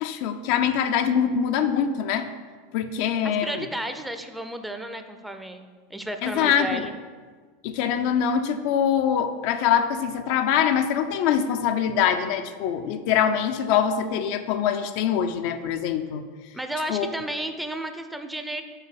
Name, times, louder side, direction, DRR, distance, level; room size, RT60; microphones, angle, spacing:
voice 1, 0.0-2.3 2.7-3.6 6.2-6.9 7.6-16.3 16.9-17.1, left 8 dB, 60° left, 7 dB, 0.5 m, -24 dB
voice 2, 3.2-6.9 16.5-18.6, right 1 dB, 5° right, 7 dB, 0.6 m, -33 dB
5.6 x 4.4 x 5.9 m, 1.5 s
hypercardioid pair, 95°, 0 cm